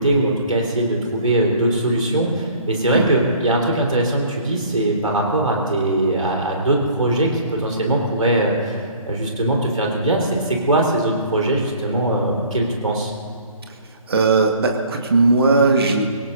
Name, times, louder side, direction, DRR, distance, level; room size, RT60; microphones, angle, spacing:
voice 1, 0.0-13.1, right 1 dB, 65° right, -1 dB, 4.2 m, -20 dB
voice 2, 14.1-16.1, right 3 dB, 40° right, 2 dB, 1.9 m, -17 dB
25.5 x 17.0 x 2.7 m, 2.2 s
figure-of-eight pair, 150°, 19 cm